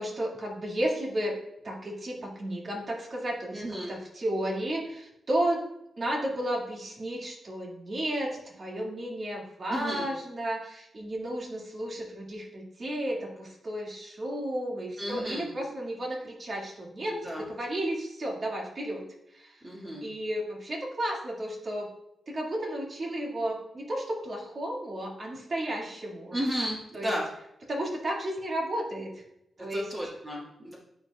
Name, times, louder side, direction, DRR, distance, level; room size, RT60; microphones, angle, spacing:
voice 1, 0.0-1.3 1.6-5.6 6.0-19.0 19.3-19.6 20.0-21.9 22.3-26.4 26.9-27.1 27.7-29.1 29.6-29.9, right 1 dB, 50° right, -2 dB, 2.2 m, -33 dB
voice 2, 3.5-3.9 9.7-10.1 15.0-15.5 17.1-17.4 19.6-20.0 26.3-27.2 29.6-30.8, equal, 30° right, -7 dB, 2.1 m, -33 dB
10.0 x 4.8 x 2.4 m, 0.83 s
cardioid pair, 60°, 0 cm